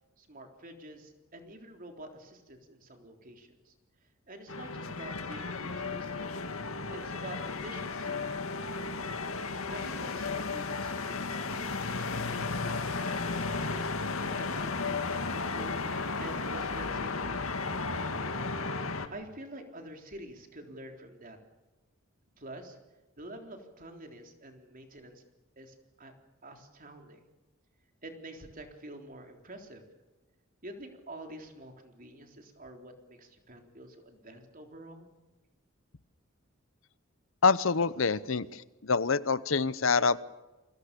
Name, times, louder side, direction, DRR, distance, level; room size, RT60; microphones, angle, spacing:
voice 1, 0.2-3.7 4.3-6.3 6.9-8.9 9.7-15.8 16.2-17.4 19.1-21.4 22.4-22.8 23.2-25.2 25.6-26.1 26.4-27.2 28.0-29.8 30.6-35.1, right 1 dB, 40° right, 4 dB, 3.7 m, -48 dB
sound 1, 4.5-19.1, left 4 dB, 85° left, 2.2 m, -34 dB
voice 2, 37.4-40.2, left 4 dB, 70° left, 17 dB, 0.9 m, -26 dB
28.5 x 22.5 x 6.9 m, 1.1 s
head